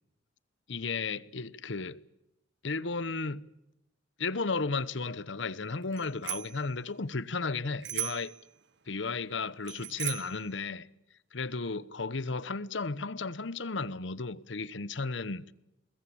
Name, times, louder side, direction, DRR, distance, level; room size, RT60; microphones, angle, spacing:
voice 1, 0.7-2.0 2.6-3.5 4.2-8.3 8.9-10.9 11.3-15.5, left 4 dB, 70° left, 1.0 m, -34 dB
Bicycle bell, 5.9-6.6 7.8-8.4 9.7-10.4, right 15 dB, 65° right, 0.8 m, -37 dB
24.5 x 21.0 x 8.6 m
head